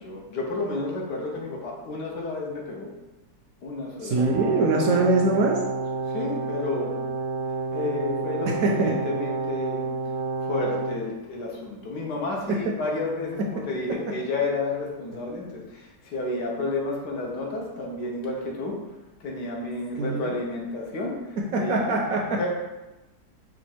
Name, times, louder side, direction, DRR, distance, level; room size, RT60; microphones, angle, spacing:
voice 1, 0.0-2.9 3.6-4.9 6.1-7.0 7.7-9.9 10.4-21.9 22.4-22.5, left 2 dB, 75° left, -1 dB, 1.4 m, -31 dB
voice 2, 4.0-5.6 8.4-8.9 12.5-12.6 20.0-20.3 21.5-22.4, right 2 dB, 70° right, 0 dB, 0.9 m, -23 dB
Brass instrument, 4.1-11.0, right 4 dB, 85° right, 1.3 m, -30 dB
5.0 x 2.4 x 4.3 m, 1.1 s
omnidirectional pair, 1.8 m